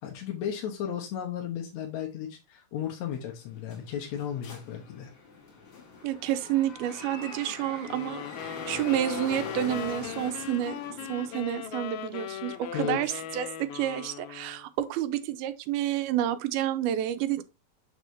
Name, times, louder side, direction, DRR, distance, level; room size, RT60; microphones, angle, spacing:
voice 1, 0.0-5.1 12.7-13.2, left 9 dB, 65° left, 1.9 m, -34 dB
sound 1, 3.1-13.5, left 4 dB, 45° left, 2.4 m, -44 dB
voice 2, 6.0-10.8 11.1-17.4, right 12 dB, 90° right, 2.5 m, -29 dB
sound 2, 7.9-14.7, left 10 dB, 85° left, 2.6 m, -39 dB
7.0 x 6.3 x 2.7 m
omnidirectional pair, 4.3 m